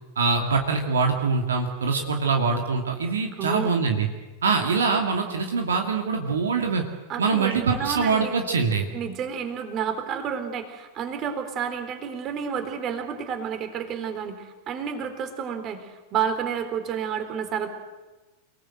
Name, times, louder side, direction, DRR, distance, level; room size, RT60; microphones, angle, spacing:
voice 1, 0.2-4.1 4.4-6.8 7.2-8.9, right 4 dB, 70° right, 3 dB, 2.6 m, -24 dB
voice 2, 3.4-3.7 7.1-8.4 8.9-17.7, right 7 dB, 35° right, 8 dB, 3.8 m, -30 dB
29.5 x 19.0 x 8.0 m, 1.2 s
figure-of-eight pair, 90°, 0 cm